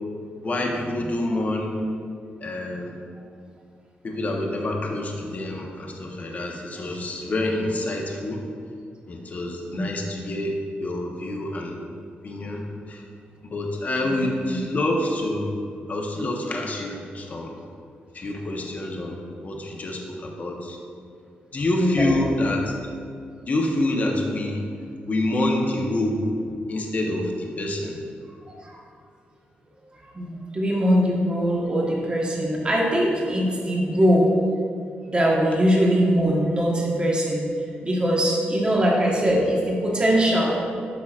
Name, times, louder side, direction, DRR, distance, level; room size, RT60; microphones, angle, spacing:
voice 1, 0.4-1.8 2.4-3.0 4.0-8.4 9.1-10.5 10.8-11.8 12.2-13.0 13.4-15.5 15.9-17.5 18.1-20.8 21.5-22.6 23.5-24.7 25.0-26.2 26.7-28.0, left 1 dB, 45° left, 1 dB, 1.0 m, -27 dB
voice 2, 14.0-14.6 21.8-22.1 28.5-28.8 30.1-34.3 35.0-37.5 37.8-40.5, equal, 25° right, -3 dB, 1.3 m, -22 dB
8.6 x 5.8 x 2.5 m, 2.3 s
cardioid pair, 85°, 4 cm